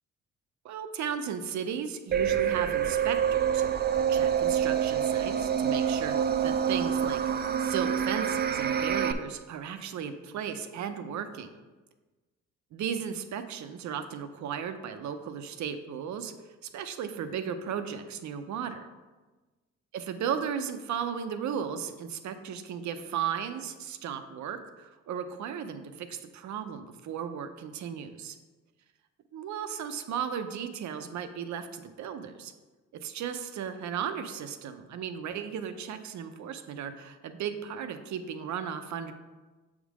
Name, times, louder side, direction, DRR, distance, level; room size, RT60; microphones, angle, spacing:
voice 1, 0.6-6.2 6.4-7.2 7.6-11.5 12.7-16.3 16.7-18.8 19.9-28.4 29.3-32.5 32.9-39.1, right 8 dB, 70° right, 9 dB, 0.7 m, -35 dB
sound 1, 2.1-9.1, right 8 dB, 35° right, 0.4 m, -27 dB
7.0 x 3.7 x 4.8 m, 1.2 s
cardioid pair, 90°, 30 cm